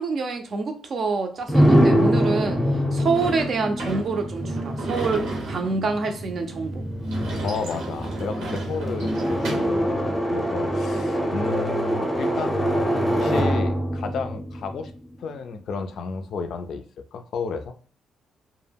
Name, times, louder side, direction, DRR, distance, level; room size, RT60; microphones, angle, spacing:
voice 1, 0.0-6.8, right 4 dB, 50° right, 0.4 m, -27 dB
sound 1, 1.5-15.3, equal, 10° left, 0.6 m, -24 dB
Sliding door / Slam, 3.1-9.8, right 2 dB, 90° right, 0.8 m, -34 dB
voice 2, 7.4-14.9 15.2-17.7, left 5 dB, 65° left, 0.3 m, -32 dB
2.1 x 2.1 x 3.3 m
cardioid pair, 90°, 0 cm